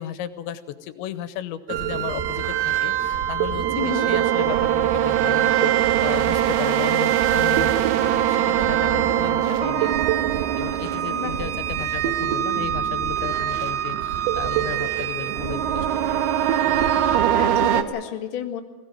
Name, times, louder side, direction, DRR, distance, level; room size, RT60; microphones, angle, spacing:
voice 1, 0.0-9.9 10.3-15.9 16.2-16.3, left 11 dB, 80° left, 11 dB, 3.1 m, -34 dB
sound 1, 1.7-17.8, right 11 dB, 75° right, 2.7 m, -22 dB
voice 2, 3.7-4.1 11.1-11.4 11.9-12.0 17.3-18.6, left 9 dB, 45° left, 2 dB, 1.7 m, -31 dB
21.5 x 16.5 x 9.1 m, 1.3 s
omnidirectional pair, 5.2 m